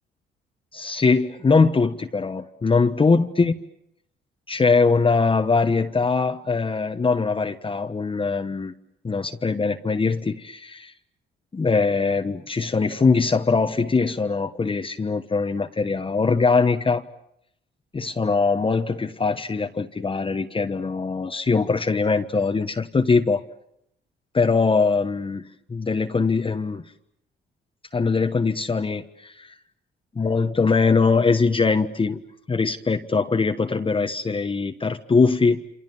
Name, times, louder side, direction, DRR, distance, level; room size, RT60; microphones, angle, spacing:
voice 1, 0.7-3.5 4.5-8.7 9.0-10.9 11.5-17.0 17.9-23.4 24.3-26.8 27.9-29.6 30.1-32.2 32.5-35.6, left 4 dB, 25° left, 6 dB, 1.3 m, -22 dB
28.0 x 27.5 x 7.3 m, 0.76 s
cardioid pair, 90°, 20 cm